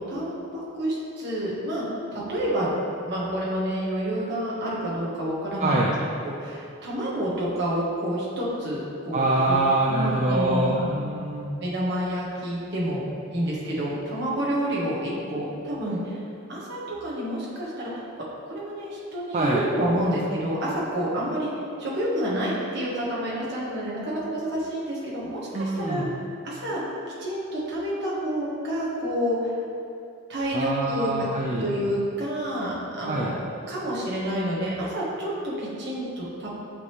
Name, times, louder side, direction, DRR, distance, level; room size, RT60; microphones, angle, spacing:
voice 1, 0.0-1.8 2.1-2.7 3.1-5.9 6.2-9.6 9.9-10.9 11.6-13.0 13.3-16.1 16.5-17.9 18.5-21.5 21.8-26.0 26.4-26.8 27.2-29.5 30.3-31.3 31.6-36.5, equal, 55° right, -7 dB, 1.4 m, -29 dB
voice 2, 5.6-6.0 9.1-11.6 19.3-19.6 25.5-26.1 30.5-31.7 33.1-33.3, right 2 dB, 35° right, -4 dB, 0.4 m, -24 dB
8.5 x 3.5 x 3.2 m, 2.6 s
head